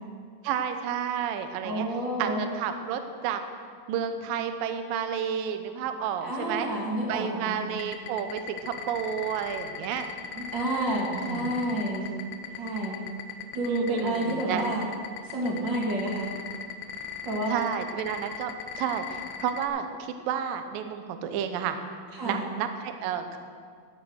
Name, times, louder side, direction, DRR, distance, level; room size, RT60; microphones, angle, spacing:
voice 1, 0.4-1.9 2.2-3.4 3.9-6.7 7.1-10.1 11.1-11.5 13.6-14.7 17.5-21.8 22.2-23.4, right 8 dB, 75° right, 7 dB, 2.1 m, -31 dB
voice 2, 1.6-2.5 6.2-7.7 10.3-12.1 12.5-13.0 13.5-14.9 15.2-16.3 17.2-17.6 22.1-22.5, right 1 dB, 35° right, -3 dB, 2.2 m, -29 dB
sound 1, 7.7-19.7, left 9 dB, 85° left, 3.3 m, -38 dB
18.5 x 7.6 x 6.4 m, 2.1 s
omnidirectional pair, 5.2 m